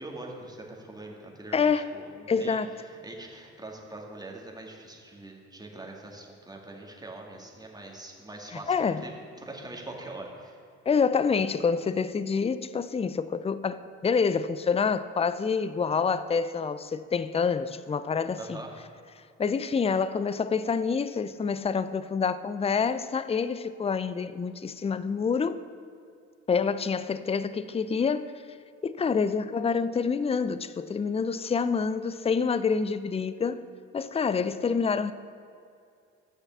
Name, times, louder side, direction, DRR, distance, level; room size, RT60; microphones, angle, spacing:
voice 1, 0.0-2.6 2.8-9.1 9.4-10.6 18.4-18.7, right 2 dB, 10° right, 2.1 m, -43 dB
voice 2, 1.5-1.9 2.3-2.7 8.7-9.0 10.9-18.6 19.4-25.6 26.5-28.2 28.8-33.6 33.9-35.1, left 5 dB, 20° left, 0.5 m, -27 dB
8.7 x 6.5 x 7.0 m
hypercardioid pair, 50°, 34 cm